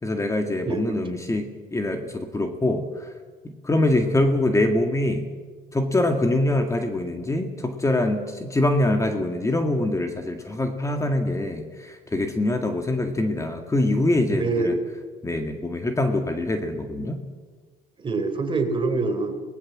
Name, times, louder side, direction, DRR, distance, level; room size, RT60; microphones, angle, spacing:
voice 1, 0.0-1.5 1.7-3.1 3.4-5.3 5.7-14.7 15.2-17.2, left 1 dB, 20° left, 5 dB, 2.0 m, -24 dB
voice 2, 14.3-14.8 18.0-19.4, right 3 dB, 30° right, 6 dB, 3.5 m, -25 dB
24.5 x 19.0 x 7.5 m, 1.5 s
cardioid pair, 110°, 17 cm